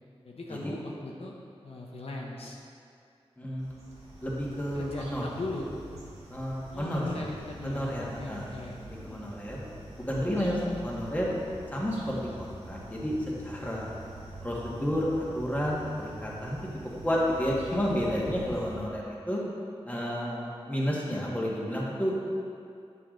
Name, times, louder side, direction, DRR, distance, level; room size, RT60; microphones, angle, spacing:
voice 1, 0.2-1.3 1.6-2.6 4.7-5.7 6.7-9.3, left 2 dB, 70° left, -2 dB, 0.8 m, -39 dB
voice 2, 3.4-3.7 4.2-5.2 6.3-7.3 7.6-9.7 10.0-11.3 11.7-13.9 14.4-16.6 17.0-19.4 19.8-22.1, equal, 15° left, -5 dB, 1.7 m, -31 dB
sound 1, 3.6-18.8, right 1 dB, 85° right, 1.5 m, -46 dB
8.6 x 6.8 x 3.8 m, 2.4 s
wide cardioid pair, 70°, 10 cm